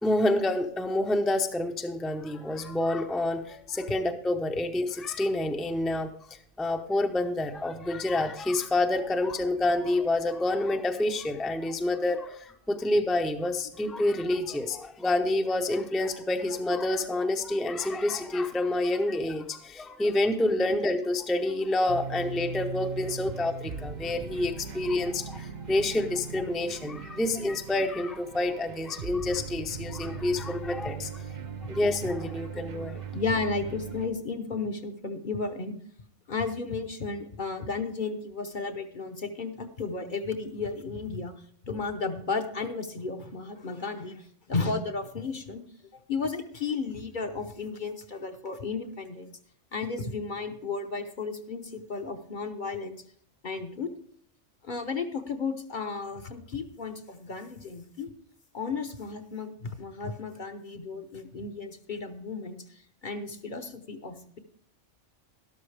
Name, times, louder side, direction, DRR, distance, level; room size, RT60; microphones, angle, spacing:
voice 1, 0.0-6.1 6.6-31.2 31.7-33.0, left 2 dB, ahead, 4 dB, 0.5 m, -28 dB
sound 1, 21.9-34.1, right 6 dB, 50° right, 0.6 m, -39 dB
voice 2, 33.1-35.7 36.3-41.3 41.6-45.6 45.9-49.3 49.7-53.0 53.4-53.9 54.6-58.1 58.5-64.4, left 4 dB, 45° left, 6 dB, 0.9 m, -34 dB
12.5 x 12.0 x 3.3 m, 0.65 s
omnidirectional pair, 1.2 m